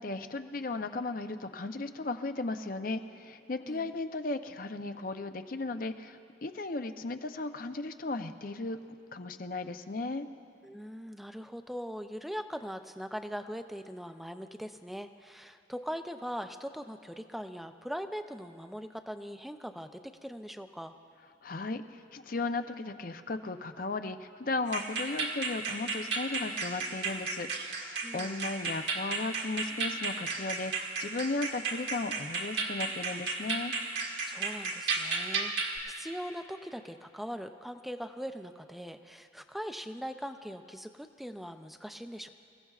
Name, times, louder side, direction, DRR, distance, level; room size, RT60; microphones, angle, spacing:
voice 1, 0.0-8.8 9.1-10.3 21.4-33.7, left 3 dB, 50° left, 8 dB, 0.6 m, -36 dB
voice 2, 10.6-20.9 28.0-28.5 34.2-42.3, equal, ahead, 7 dB, 0.5 m, -41 dB
sound 1, 24.7-35.8, right 4 dB, 75° right, 1.7 m, -34 dB
28.0 x 16.0 x 2.4 m, 2.6 s
head